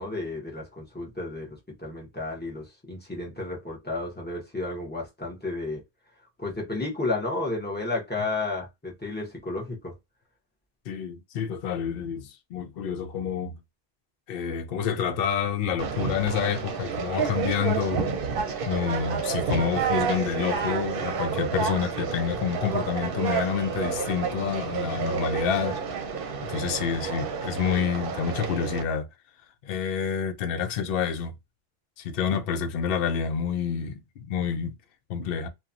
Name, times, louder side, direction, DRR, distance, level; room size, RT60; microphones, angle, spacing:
voice 1, 0.0-5.8 6.4-9.9, left 2 dB, 10° left, 1.0 m, -32 dB
voice 2, 10.9-13.6 14.3-18.0 18.6-25.8 26.4-29.1 29.6-31.3 32.0-34.7 35.1-35.5, left 7 dB, 70° left, 0.7 m, -28 dB
Conversation, 15.8-28.8, right 6 dB, 65° right, 0.8 m, -30 dB
2.9 x 2.2 x 2.4 m
omnidirectional pair, 1.0 m